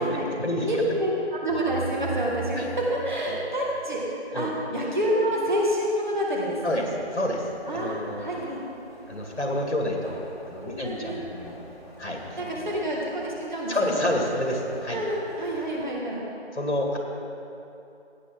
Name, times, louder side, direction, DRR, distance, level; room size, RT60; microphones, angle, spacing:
voice 1, 0.0-0.7 2.6-2.7 3.3-3.4 4.3-4.5 6.6-7.5 7.7-8.4 9.1-11.6 12.0-12.7 13.7-15.0 15.8-15.9 16.5-17.0, left 1 dB, 70° left, 0 dB, 2.3 m, -29 dB
voice 2, 0.6-6.9 7.7-8.6 10.6-11.2 12.4-14.0 14.9-16.2, equal, 45° right, -3 dB, 2.1 m, -28 dB
sound 1, 1.5-4.4, right 4 dB, 60° right, 0.6 m, -36 dB
Writing, 6.4-15.8, equal, 5° right, 1.2 m, -47 dB
16.5 x 8.5 x 3.8 m, 2.8 s
figure-of-eight pair, 165°, 34 cm